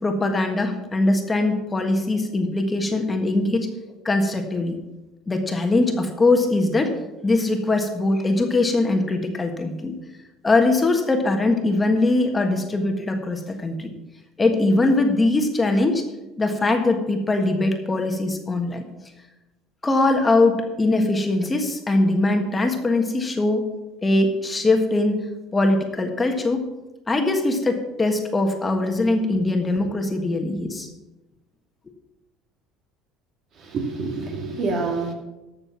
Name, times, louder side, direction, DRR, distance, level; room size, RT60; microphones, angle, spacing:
voice 1, 0.0-3.7 4.0-4.8 5.3-6.9 7.2-9.9 10.4-13.9 14.4-16.0 16.4-18.8 19.8-23.7 24.0-26.7 27.1-30.9, left 2 dB, 20° left, 4 dB, 1.5 m, -21 dB
voice 2, 33.6-35.1, right 3 dB, 50° right, 3 dB, 2.4 m, -27 dB
12.5 x 6.8 x 5.9 m, 1.0 s
supercardioid pair, 105°, 0 cm